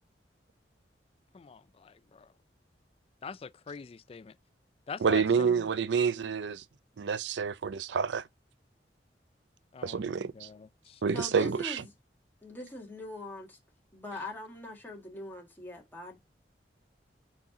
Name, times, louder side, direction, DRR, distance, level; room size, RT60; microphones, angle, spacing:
voice 1, 1.3-2.3 3.2-4.4 4.9-5.7 9.7-11.0, left 5 dB, 35° left, 0.3 m, -44 dB
voice 2, 5.0-6.6 7.0-8.2 9.8-10.5 11.0-11.8, right 6 dB, 85° right, 0.5 m, -28 dB
voice 3, 11.1-11.8 12.4-13.6 13.9-16.2, left 1 dB, 10° left, 1.6 m, -42 dB
6.1 x 4.2 x 3.8 m
head